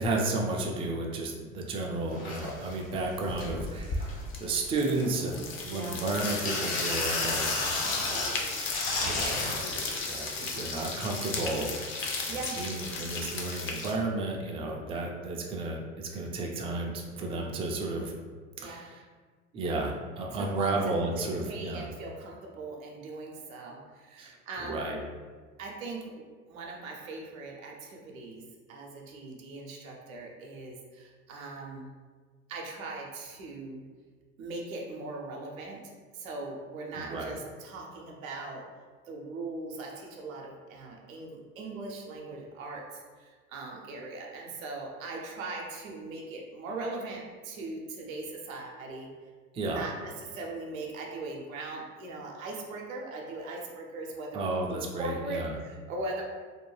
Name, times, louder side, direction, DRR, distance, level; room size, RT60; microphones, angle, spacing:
voice 1, 0.0-7.6 8.0-8.3 9.0-11.7 12.3-18.1 18.6-19.0 19.5-21.9 24.2-25.0 36.9-37.3 49.5-49.8 54.3-55.5, right 2 dB, 15° right, 0 dB, 0.3 m, -33 dB
sound 1, 1.7-1.8 2.1-2.7 3.2-3.5 4.0-4.5 4.9-5.7 6.2-9.6 10.6-10.7, left 2 dB, 60° left, 1.0 m, -33 dB
sound 2, 2.3-2.7 3.0-13.9, left 3 dB, 30° left, 0.6 m, -35 dB
voice 2, 5.7-6.0 7.8-8.7 9.3-10.0 12.3-12.6 18.5-18.9 20.3-20.7 21.5-24.9 25.6-28.4 28.7-31.9 32.5-33.8 34.4-35.8 36.1-38.6 39.1-49.1 49.6-56.2, right 2 dB, 80° right, -1 dB, 0.7 m, -40 dB
2.7 x 2.2 x 3.1 m, 1.5 s
hypercardioid pair, 75°, 40 cm